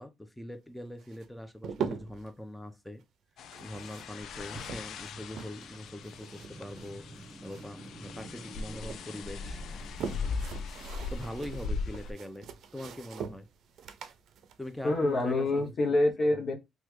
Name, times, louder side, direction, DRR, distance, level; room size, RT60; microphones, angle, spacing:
voice 1, 0.0-3.0 3.6-7.1 7.4-9.7 11.1-13.5 14.6-15.7 16.2-16.4, left 1 dB, 5° left, 0.6 m, -42 dB
sound 1, 1.0-2.3 3.4-5.8 6.0-7.9 8.2-9.0 9.6-15.6, right 7 dB, 75° right, 0.5 m, -42 dB
sound 2, 3.4-12.1, left 4 dB, 75° left, 0.3 m, -39 dB
Car, 4.4-10.9, right 1 dB, 20° right, 1.1 m, -49 dB
voice 2, 14.8-16.5, left 2 dB, 50° left, 0.8 m, -26 dB
3.1 x 2.3 x 3.0 m
cardioid pair, 90°, 0 cm